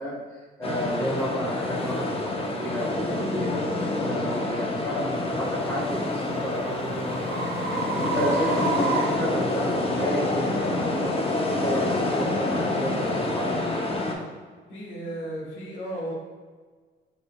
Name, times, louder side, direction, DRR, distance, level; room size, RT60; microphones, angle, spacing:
voice 1, 0.0-3.6 4.0-7.6 7.9-13.7, equal, 10° left, -8 dB, 1.5 m, -31 dB
sound 1, 0.6-14.1, left 2 dB, 30° left, 0.7 m, -27 dB
sound 2, 1.2-1.3 1.9-2.1 2.7-2.9 5.5-10.0, right 4 dB, 70° right, 0.9 m, -32 dB
voice 2, 14.7-16.1, right 1 dB, 70° left, -4 dB, 1.2 m, -34 dB
5.4 x 4.1 x 2.3 m, 1.5 s
cardioid pair, 90°, 20 cm